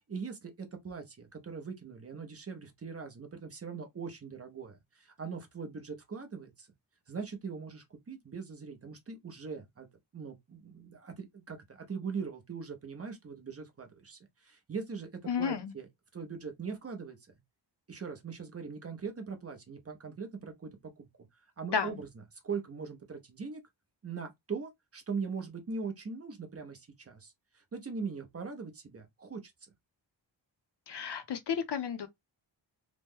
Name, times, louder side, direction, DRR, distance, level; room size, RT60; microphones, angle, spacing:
voice 1, 0.1-6.7 7.1-9.9 10.1-15.9 16.1-17.2 17.9-21.1 21.6-22.1 22.4-23.6 24.0-29.5, right 5 dB, 30° right, 0.6 m, -41 dB
voice 2, 15.3-15.7 21.7-22.0 30.9-32.1, left 7 dB, 60° left, 0.6 m, -32 dB
3.0 x 2.1 x 3.5 m
wide cardioid pair, 175°, 45 cm